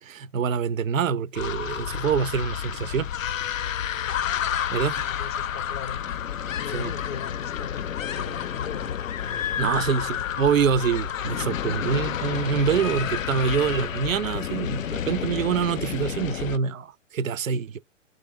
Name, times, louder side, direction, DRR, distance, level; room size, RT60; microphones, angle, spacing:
voice 1, 0.0-3.1 4.7-5.1 6.7-6.9 9.6-17.8, right 6 dB, 90° right, 0.5 m, -25 dB
sound 1, 1.3-16.6, left 9 dB, 85° left, 0.5 m, -30 dB
voice 2, 5.0-6.0 6.6-10.0, left 6 dB, 20° left, 0.4 m, -39 dB
3.1 x 2.5 x 4.2 m
hypercardioid pair, 120°, 39 cm